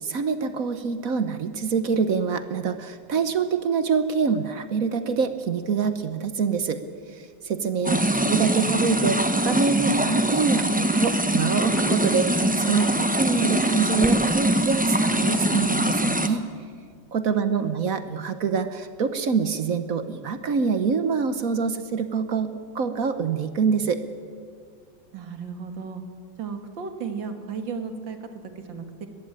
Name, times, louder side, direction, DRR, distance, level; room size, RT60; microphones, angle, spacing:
voice 1, 0.0-6.8 7.1-16.5 17.1-24.0, right 5 dB, 55° right, 10 dB, 1.2 m, -25 dB
sound 1, 7.8-16.3, right 1 dB, 10° right, 0.4 m, -23 dB
voice 2, 7.8-8.4 17.3-17.8 25.1-26.0 26.4-29.1, right 6 dB, 75° right, 7 dB, 2.5 m, -35 dB
21.5 x 15.0 x 8.9 m, 2.1 s
omnidirectional pair, 2.1 m